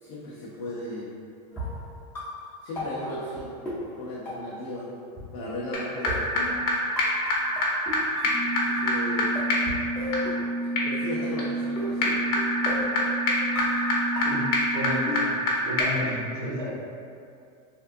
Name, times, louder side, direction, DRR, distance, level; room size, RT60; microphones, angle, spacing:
voice 1, 0.0-1.1 2.6-3.6 3.9-4.9 5.3-6.3 8.5-9.3 10.8-12.2, left 1 dB, 35° left, -6 dB, 0.4 m, -36 dB
sound 1, 1.5-4.8 5.1-5.2 6.0-9.1 9.3-11.0 11.7-16.0, left 1 dB, 10° left, 0.7 m, -36 dB
sound 2, 5.7-5.8 6.0-6.1 6.4-6.5 6.7-6.8 7.0-7.1 7.3-7.4 7.6-7.7 7.9-8.0 8.2-15.5 15.8-15.9, left 1 dB, 65° left, 0.7 m, -26 dB
voice 2, 14.2-15.3 15.6-16.7, equal, 40° right, -6 dB, 0.8 m, -32 dB
3.4 x 2.2 x 2.5 m, 2.3 s
supercardioid pair, 170°, 20 cm